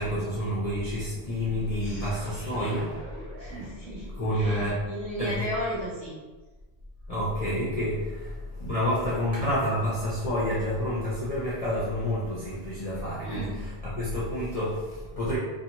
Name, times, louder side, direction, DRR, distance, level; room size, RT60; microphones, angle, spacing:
voice 1, 0.0-2.9 3.5-3.6 4.1-4.8 5.2-5.4 7.1-15.4, equal, 45° left, -8 dB, 0.5 m, -29 dB
sound 1, 1.6-4.8, right 1 dB, 50° right, 0.7 m, -45 dB
voice 2, 3.4-6.2 13.2-13.6, equal, 35° right, -10 dB, 1.3 m, -35 dB
2.8 x 2.4 x 2.6 m, 1.2 s
omnidirectional pair, 1.1 m